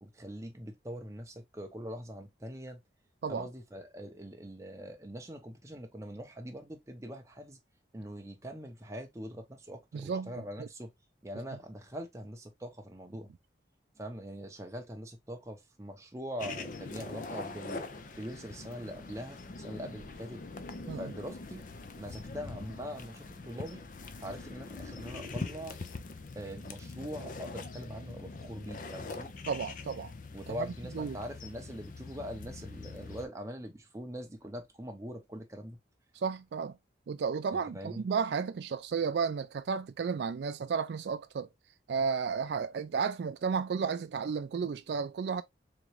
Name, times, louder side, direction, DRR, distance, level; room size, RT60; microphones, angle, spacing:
voice 1, 0.0-2.8 3.3-7.6 7.9-10.9 11.2-13.3 14.0-17.8 18.2-20.4 21.0-21.6 22.0-23.8 24.2-25.8 26.3-29.3 30.3-35.8 37.5-38.0, equal, 15° right, 0.7 m, -43 dB
voice 2, 9.9-10.3 10.6-10.7 20.9-21.1 29.5-30.1 30.5-30.7 30.9-31.2 36.2-36.8 37.1-41.5 41.9-45.4, right 6 dB, 65° right, 0.3 m, -33 dB
sound 1, 16.4-33.3, left 3 dB, 45° left, 0.5 m, -43 dB
3.7 x 3.0 x 3.0 m
head